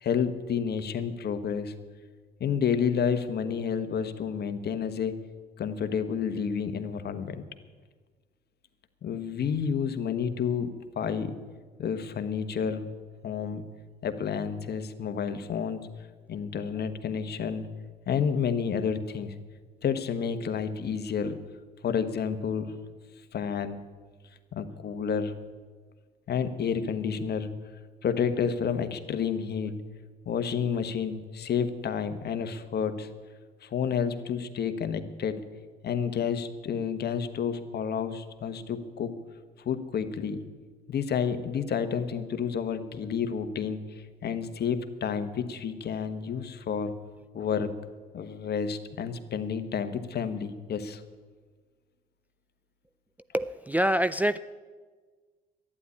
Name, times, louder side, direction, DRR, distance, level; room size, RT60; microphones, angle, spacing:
voice 1, 0.0-1.7 2.4-5.2 5.6-7.4 9.0-11.3 11.8-12.8 13.2-13.6 14.0-15.9 16.3-17.7 18.1-19.3 19.8-21.4 21.8-22.8 23.3-23.8 24.5-25.4 26.3-27.5 28.0-29.7 30.2-33.1 33.6-35.4 35.8-39.2 39.6-40.4 40.9-46.9 47.3-47.7 48.1-51.0, left 7 dB, 50° left, 9 dB, 1.3 m, -30 dB
voice 2, 53.3-54.4, right 1 dB, 10° right, 12 dB, 0.4 m, -25 dB
11.5 x 10.0 x 9.8 m, 1.5 s
supercardioid pair, 65°, 21 cm